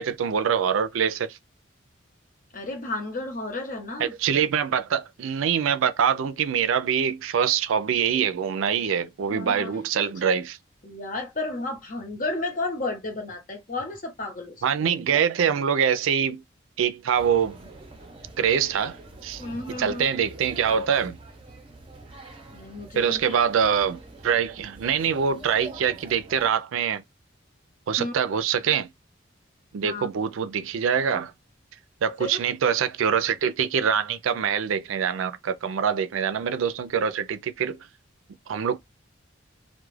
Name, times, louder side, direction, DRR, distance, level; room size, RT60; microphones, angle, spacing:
voice 1, 0.0-1.4 4.0-10.6 14.6-16.4 16.8-17.6 18.4-19.4 19.8-21.2 22.9-27.0 27.9-28.9 29.7-31.3 32.0-37.8 38.5-38.8, right 7 dB, 85° right, 0.4 m, -24 dB
voice 2, 2.5-4.1 9.3-9.8 10.8-14.6 19.4-20.1 22.5-23.4 28.0-28.2 29.8-30.1 32.2-32.4, left 2 dB, 40° left, 0.9 m, -32 dB
sound 1, 17.2-26.5, right 2 dB, 25° right, 0.5 m, -45 dB
2.3 x 2.1 x 3.1 m
head